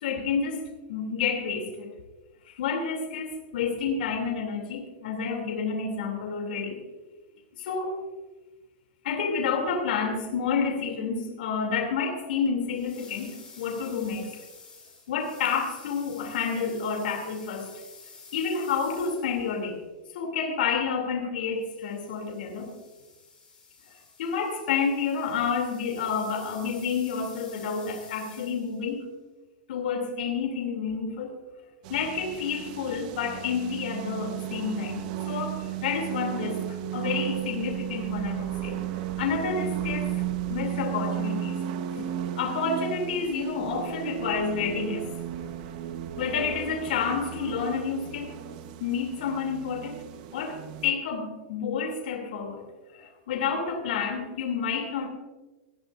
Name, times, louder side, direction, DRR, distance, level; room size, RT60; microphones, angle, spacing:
voice 1, 0.0-1.9 2.5-6.8 7.5-8.0 9.0-14.3 15.1-17.7 18.3-19.8 20.1-22.7 24.2-29.0 29.7-31.3 31.9-38.8 39.2-40.1 40.5-41.6 42.0-42.1 42.4-45.1 46.2-48.3 48.8-50.0 50.3-52.6 52.9-55.1, left 5 dB, 75° left, 3 dB, 3.0 m, -29 dB
sound 1, 12.7-19.7 21.6-28.9, left 5 dB, 15° left, 4.9 m, -50 dB
sound 2, 31.8-50.9, right 11 dB, 50° right, 1.2 m, -34 dB
18.5 x 14.5 x 2.6 m, 1.2 s
supercardioid pair, 155°, 5 cm